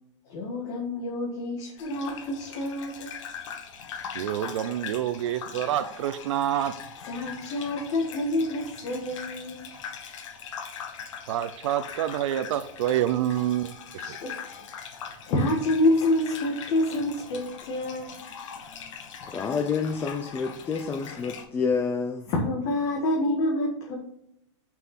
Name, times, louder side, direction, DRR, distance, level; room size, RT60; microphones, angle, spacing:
voice 1, 0.2-3.1 7.0-9.7 14.0-14.7 15.2-18.1 22.3-24.0, left 1 dB, 45° left, -2 dB, 1.7 m, -27 dB
Gurgling / Bathtub (filling or washing), 1.8-21.4, left 7 dB, 75° left, 1.5 m, -41 dB
voice 2, 4.1-6.7 11.3-14.2, right 11 dB, 70° right, 11 dB, 0.5 m, -27 dB
voice 3, 19.3-22.3, left 5 dB, 15° left, 6 dB, 0.5 m, -28 dB
6.1 x 5.6 x 5.9 m, 0.79 s
supercardioid pair, 155°, 16 cm